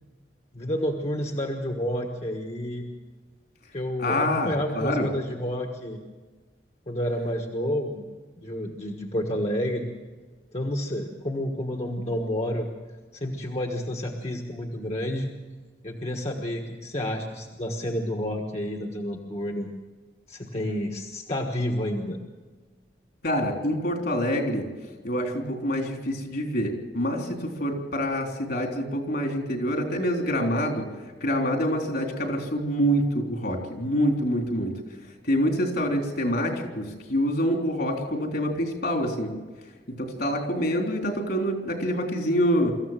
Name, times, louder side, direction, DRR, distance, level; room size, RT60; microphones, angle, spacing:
voice 1, 0.5-2.9 3.7-6.0 6.9-8.0 8.4-9.9 10.5-12.7 13.1-15.3 15.8-19.7 20.3-22.2, equal, 40° left, 2 dB, 1.4 m, -30 dB
voice 2, 4.0-5.1 23.2-24.7 25.0-30.9 31.2-34.7 35.2-39.3 39.9-42.8, equal, 65° left, 3 dB, 3.6 m, -26 dB
24.5 x 14.5 x 7.5 m, 1.3 s
head